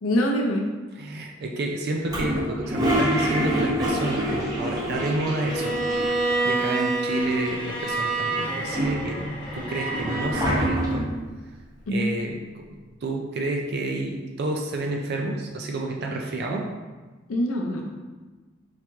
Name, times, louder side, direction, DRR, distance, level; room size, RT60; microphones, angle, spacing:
voice 1, 0.0-0.7 11.9-12.1 17.3-18.0, equal, 80° left, 1 dB, 0.5 m, -24 dB
voice 2, 1.0-5.8 6.0-9.2 9.5-11.1 11.9-16.7, right 2 dB, 50° right, 1 dB, 0.4 m, -29 dB
Toilet flush, 2.1-6.4 6.7-6.8 7.0-7.9 8.4-11.2, right 1 dB, 20° right, 0.8 m, -27 dB
Bowed string instrument, 5.5-10.4, right 2 dB, 25° left, 0.9 m, -28 dB
4.7 x 3.0 x 3.4 m, 1.3 s
head